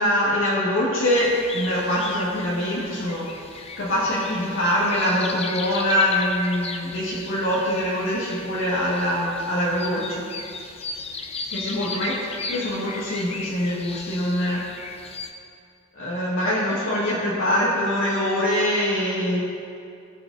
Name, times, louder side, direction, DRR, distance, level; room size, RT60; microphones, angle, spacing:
voice 1, 0.0-3.3 3.8-10.3 11.5-14.6 16.0-19.4, equal, 75° left, -7 dB, 1.7 m, -24 dB
sound 1, 1.2-15.3, left 4 dB, 30° left, 0.6 m, -36 dB
17.0 x 5.9 x 4.0 m, 2.4 s
head